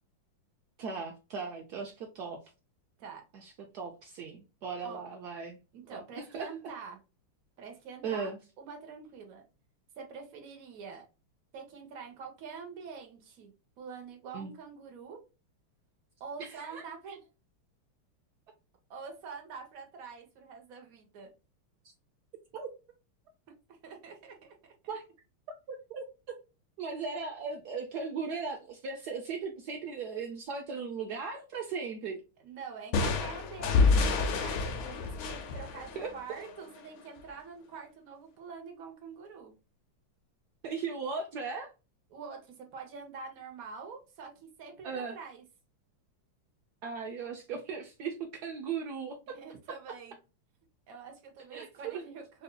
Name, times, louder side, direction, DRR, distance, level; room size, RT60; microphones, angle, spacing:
voice 1, 0.8-2.4 3.3-5.6 5.9-6.5 8.0-8.4 14.3-14.5 16.4-16.8 22.5-22.7 24.9-25.0 25.7-26.0 26.8-32.2 36.0-36.4 40.6-41.7 44.8-45.2 46.8-49.4 51.5-52.0, right 5 dB, 80° right, 3 dB, 0.9 m, -37 dB
voice 2, 5.7-7.0 7.6-8.3 8.6-9.4 10.0-11.1 11.5-13.5 13.8-15.2 16.2-17.2 18.9-21.3 23.7-24.9 32.4-39.5 42.1-45.4 49.3-50.2 50.9-52.4, right 5 dB, 50° right, 3 dB, 1.3 m, -45 dB
sound 1, 32.9-36.6, left 4 dB, 75° left, 1.5 m, -28 dB
5.4 x 2.7 x 2.2 m, 0.29 s
omnidirectional pair, 2.4 m